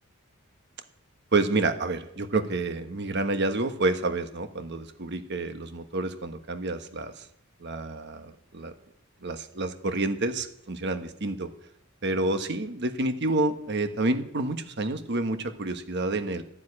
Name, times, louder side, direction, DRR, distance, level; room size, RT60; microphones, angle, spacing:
voice 1, 1.3-7.3 7.6-8.7 9.2-11.5 12.0-16.4, right 2 dB, 55° right, 9 dB, 1.2 m, -29 dB
13.0 x 7.4 x 9.7 m, 0.73 s
head